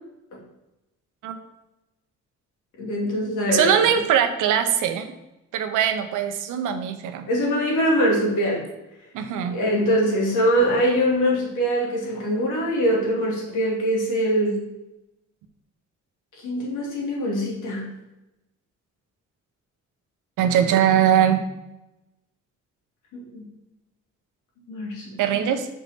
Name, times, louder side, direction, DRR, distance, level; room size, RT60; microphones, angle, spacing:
voice 1, 2.8-3.9 7.3-8.7 9.5-14.6 16.4-17.8 23.1-23.5 24.7-25.2, equal, 85° left, -3 dB, 2.7 m, -23 dB
voice 2, 3.5-5.1 5.5-7.3 9.1-9.6 20.4-21.4 25.2-25.7, right 9 dB, 90° right, 7 dB, 1.0 m, -21 dB
6.0 x 5.5 x 6.0 m, 0.96 s
cardioid pair, 90°, 30 cm